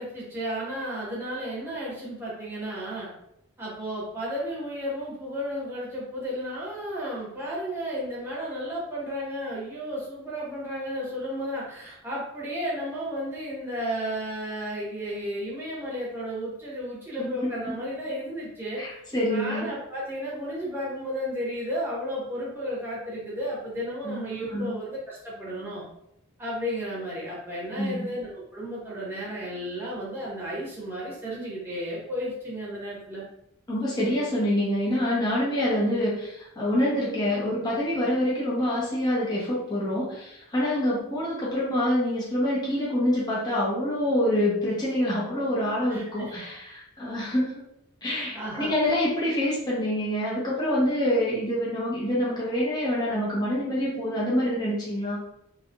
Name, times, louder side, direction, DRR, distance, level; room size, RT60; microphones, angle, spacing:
voice 1, 0.0-3.1 3.6-19.0 19.3-25.8 26.4-33.3 45.9-46.5 48.3-48.9, equal, 10° right, -6 dB, 1.0 m, -33 dB
voice 2, 17.2-17.5 18.8-19.7 24.0-24.7 27.8-28.1 33.7-47.6 48.0-55.2, left 1 dB, 20° left, -7 dB, 0.8 m, -26 dB
3.2 x 2.8 x 2.4 m, 0.79 s
head